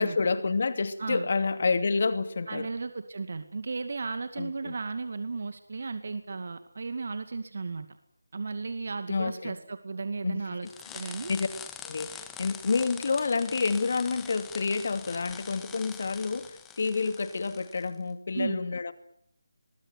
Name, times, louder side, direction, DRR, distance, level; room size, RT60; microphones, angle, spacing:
voice 1, 0.0-2.7 4.4-4.7 9.1-9.5 10.2-10.7 11.3-11.5 11.8-18.9, left 4 dB, 55° left, 10 dB, 2.6 m, -29 dB
voice 2, 2.5-7.9 8.3-10.7 10.9-11.3 18.3-18.6, right 4 dB, 55° right, 9 dB, 2.4 m, -35 dB
sound 1, 10.7-17.9, left 8 dB, 10° left, 1.9 m, -44 dB
24.5 x 22.5 x 9.6 m, 0.68 s
figure-of-eight pair, 155°, 0 cm